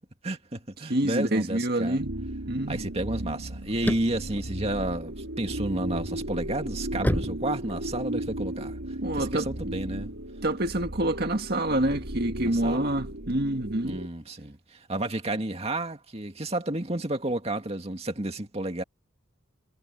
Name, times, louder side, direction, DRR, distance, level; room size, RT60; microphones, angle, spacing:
voice 1, 0.2-2.0 2.7-8.8 9.1-10.1 12.5-12.9 13.9-18.8, right 1 dB, 30° right, 2.2 m, -31 dB
voice 2, 0.9-2.1 2.5-2.9 9.0-9.5 10.4-14.0, right 1 dB, 50° right, 2.0 m, -27 dB
sound 1, 2.0-14.1, right 1 dB, 90° right, 3.5 m, -35 dB
sound 2, 3.6-5.5 6.0-8.2, equal, 10° left, 5.7 m, -30 dB
head